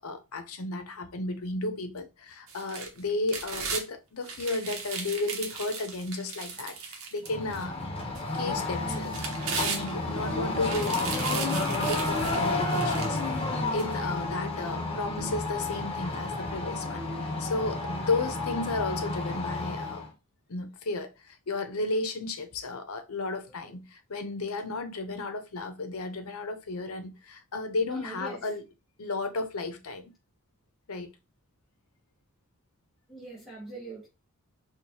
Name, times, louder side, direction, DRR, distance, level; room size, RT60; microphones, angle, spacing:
voice 1, 0.0-7.9 8.3-20.0 20.5-28.6 29.0-30.1 30.9-31.1, left 3 dB, 80° left, 0.7 m, -33 dB
sound 1, 2.5-3.8 4.2-7.6 8.1-8.2 8.9-10.2 10.6-13.3 13.8-13.9, right 5 dB, 75° right, 0.8 m, -36 dB
sound 2, 7.3-20.1, left 2 dB, 25° left, 1.1 m, -31 dB
voice 2, 27.9-28.5 33.1-34.1, right 3 dB, ahead, 0.9 m, -43 dB
4.6 x 2.3 x 2.7 m
head